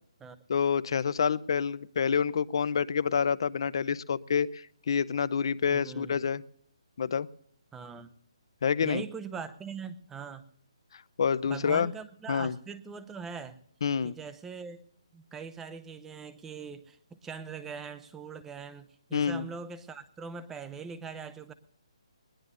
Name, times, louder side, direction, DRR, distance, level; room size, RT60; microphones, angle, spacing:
voice 1, 0.5-6.4 7.0-7.3 8.6-9.0 11.2-11.9 12.3-12.6 13.8-14.2 19.1-19.5, left 6 dB, 55° left, 16 dB, 0.7 m, -28 dB
voice 2, 5.7-6.2 7.7-8.1 8.8-10.5 11.5-13.6 14.0-14.8 15.1-21.5, right 5 dB, 10° right, 12 dB, 0.7 m, -41 dB
20.5 x 20.0 x 2.6 m, 0.66 s
hypercardioid pair, 165°, 3 cm